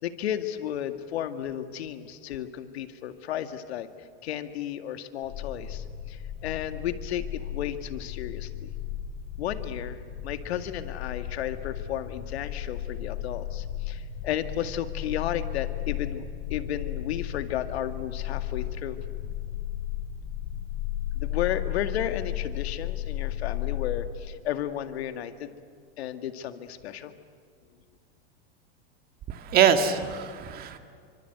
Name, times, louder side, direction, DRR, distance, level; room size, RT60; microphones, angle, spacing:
voice 1, 0.0-3.9 4.2-8.7 9.4-16.2 16.5-19.0 21.1-25.5 26.0-27.1, left 10 dB, 70° left, 8 dB, 2.0 m, -33 dB
sound 1, 5.2-24.1, left 11 dB, 40° left, 4.8 m, -34 dB
voice 2, 29.3-30.8, right 8 dB, 30° right, 7 dB, 1.9 m, -23 dB
28.5 x 25.0 x 8.0 m, 2.1 s
supercardioid pair, 150°, 33 cm